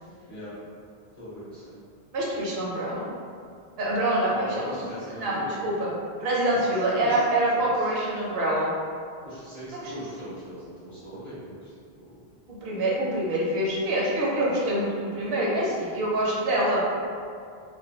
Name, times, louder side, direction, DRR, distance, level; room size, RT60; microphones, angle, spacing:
voice 1, 1.2-1.8 4.3-5.7 6.5-7.3 7.6-7.9 9.2-12.2, left 1 dB, 35° left, -12 dB, 0.7 m, -40 dB
voice 2, 2.1-3.1 3.8-4.7 5.1-5.9 6.2-8.7 9.7-9.9 12.5-16.8, right 1 dB, 70° right, -5 dB, 0.9 m, -25 dB
2.4 x 2.1 x 2.7 m, 2.3 s
omnidirectional pair, 1.1 m